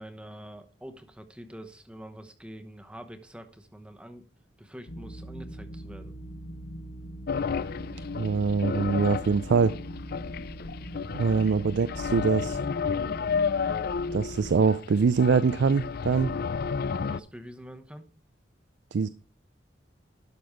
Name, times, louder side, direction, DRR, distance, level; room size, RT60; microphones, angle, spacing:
voice 1, 0.0-4.2 4.6-6.2 11.3-11.4 16.9-18.1, equal, 5° right, 7 dB, 1.0 m, -45 dB
sound 1, 4.9-14.5, right 1 dB, 70° left, 1.3 m, -41 dB
sound 2, 7.3-17.2, left 6 dB, 55° left, 0.4 m, -32 dB
voice 2, 8.1-9.7 11.1-12.6 14.1-16.4 18.9-19.1, right 5 dB, 65° right, 16 dB, 0.4 m, -24 dB
12.0 x 6.1 x 4.9 m, 0.36 s
head